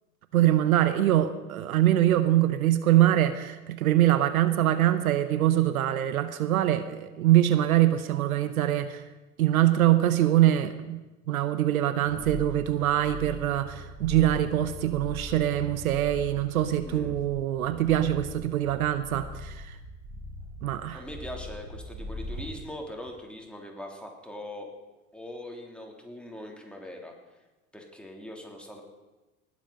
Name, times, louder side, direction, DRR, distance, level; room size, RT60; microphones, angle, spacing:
voice 1, 0.3-9.0 9.4-11.0 11.3-19.7 20.6-21.0, right 13 dB, 80° right, 12 dB, 0.9 m, -24 dB
sound 1, 12.0-22.6 23.0-23.2, left 1 dB, 55° right, 4.2 m, -41 dB
voice 2, 20.9-24.7 25.1-27.1 27.7-28.8, left 1 dB, ahead, 0 dB, 3.1 m, -41 dB
19.5 x 8.4 x 5.2 m, 1.1 s
hypercardioid pair, 75°, 42 cm